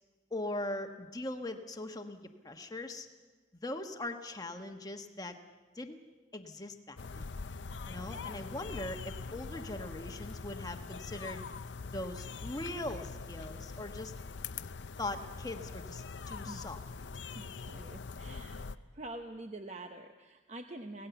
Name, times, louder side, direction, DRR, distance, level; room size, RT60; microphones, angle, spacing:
voice 1, 0.3-3.1 3.6-5.4 5.7-6.0 6.3-7.3 7.9-11.4 11.9-14.1 15.0-16.8, left 2 dB, 20° left, 5 dB, 1.2 m, -40 dB
sound 1, 7.0-18.8, left 4 dB, 70° left, 0.6 m, -43 dB
voice 2, 16.5-16.8 17.3-18.7 18.9-21.1, right 2 dB, 35° right, 5 dB, 0.8 m, -46 dB
25.0 x 17.5 x 7.0 m, 1.3 s
head